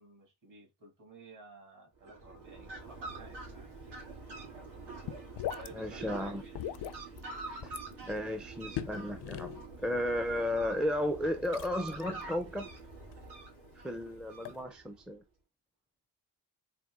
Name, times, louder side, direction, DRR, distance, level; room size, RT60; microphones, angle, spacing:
voice 1, 0.0-3.8 5.5-6.6, right 3 dB, 50° right, 2.3 m, -54 dB
Fowl, 2.0-15.0, right 3 dB, 80° right, 2.6 m, -46 dB
sound 1, 2.8-14.6, left 12 dB, 75° left, 0.5 m, -45 dB
voice 2, 5.7-6.4 7.6-7.8 8.0-12.7 13.8-15.2, left 1 dB, ahead, 0.4 m, -34 dB
4.2 x 2.9 x 3.6 m
wide cardioid pair, 125°, 40 cm